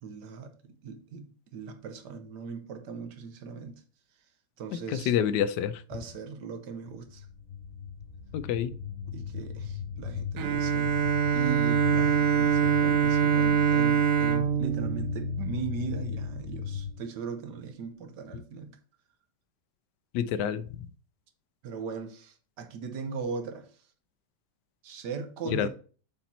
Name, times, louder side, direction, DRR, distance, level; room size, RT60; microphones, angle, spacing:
voice 1, 0.0-3.8 4.6-5.1 5.9-7.3 9.1-10.9 11.3-18.8 21.6-23.7 24.8-25.7, right 5 dB, 80° right, 1.5 m, -39 dB
voice 2, 4.9-5.8 8.3-8.7 20.1-20.7 25.5-25.7, left 9 dB, 80° left, 1.2 m, -27 dB
sound 1, 6.9-16.9, left 7 dB, 35° left, 1.8 m, -37 dB
Bowed string instrument, 10.4-16.0, right 8 dB, 60° right, 1.0 m, -25 dB
7.3 x 4.3 x 4.1 m
omnidirectional pair, 1.8 m